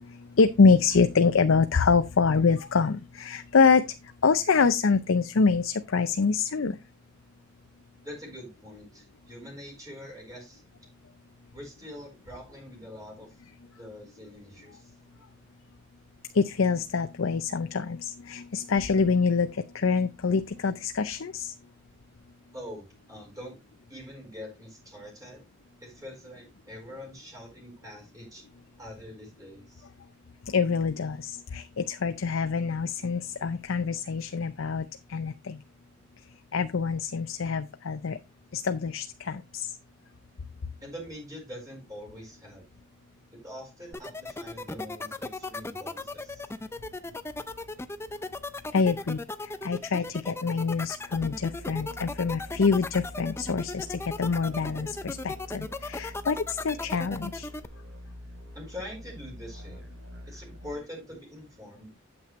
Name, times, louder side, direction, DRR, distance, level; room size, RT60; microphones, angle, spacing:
voice 1, 0.1-3.8 4.2-6.8 16.3-21.5 30.5-35.6 36.5-38.2 38.5-39.7 48.7-49.2 49.6-57.5, left 5 dB, 85° left, 0.6 m, -25 dB
voice 2, 8.0-10.6 11.5-13.3 13.8-15.2 22.5-23.6 23.9-25.5 25.8-28.4 28.8-29.9 40.8-42.6 43.3-46.5 58.5-59.9 60.3-61.9, equal, 20° right, 4.6 m, -44 dB
sound 1, 43.9-57.7, left 2 dB, 15° left, 0.5 m, -36 dB
sound 2, 51.1-60.7, left 1 dB, 80° right, 3.3 m, -45 dB
8.8 x 7.6 x 3.1 m
head